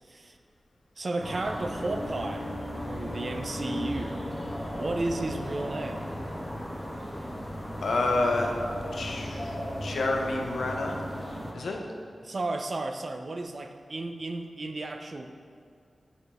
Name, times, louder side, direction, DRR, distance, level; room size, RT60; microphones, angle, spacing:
voice 1, 1.0-2.5 2.9-4.2 4.7-6.1 12.2-15.3, right 2 dB, 45° right, 6 dB, 0.5 m, -33 dB
sound 1, 1.2-11.5, equal, 5° left, 1.2 m, -36 dB
voice 2, 7.8-8.5 8.9-9.5 9.8-11.0 11.5-11.8, left 2 dB, 90° left, 1 dB, 0.7 m, -28 dB
Bowed string instrument, 8.0-13.0, right 1 dB, 35° left, 1.3 m, -51 dB
8.2 x 3.6 x 4.2 m, 2.2 s
wide cardioid pair, 100°, 0 cm